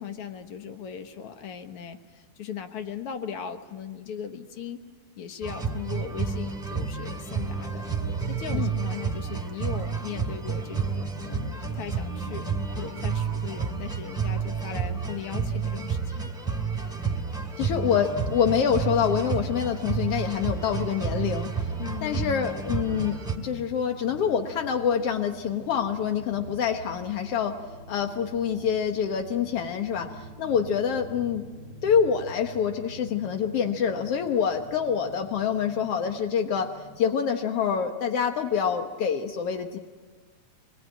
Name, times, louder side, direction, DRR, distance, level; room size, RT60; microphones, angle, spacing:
voice 1, 0.0-4.8 5.2-7.9 8.3-12.5 12.8-16.3 21.8-22.2, left 7 dB, 65° left, 7 dB, 1.4 m, -38 dB
sound 1, 5.4-23.4, right 5 dB, ahead, 1.6 m, -30 dB
voice 2, 17.6-21.5 22.0-27.5 27.9-31.5 31.8-36.7 37.0-39.8, left 7 dB, 80° left, 5 dB, 1.3 m, -26 dB
sound 2, 20.7-37.0, right 2 dB, 35° left, 3.5 m, -46 dB
26.0 x 21.0 x 9.0 m, 1.4 s
omnidirectional pair, 4.3 m